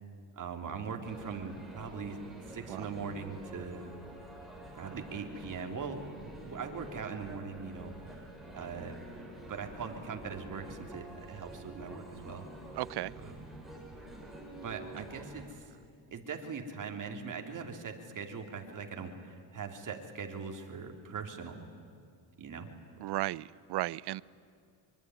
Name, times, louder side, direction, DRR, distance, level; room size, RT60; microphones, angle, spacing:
voice 1, 0.3-2.2 2.5-3.9 4.7-8.2 8.5-8.9 9.5-12.4 13.2-13.3 14.6-15.6 16.1-21.6 22.4-22.7, right 5 dB, 40° right, 3 dB, 3.3 m, -41 dB
sound 1, 1.0-15.4, right 1 dB, ahead, 6.2 m, -48 dB
voice 2, 12.7-13.2 23.0-24.2, right 16 dB, 55° right, 21 dB, 0.7 m, -35 dB
24.5 x 24.0 x 9.7 m, 2.4 s
cardioid pair, 115°, 48 cm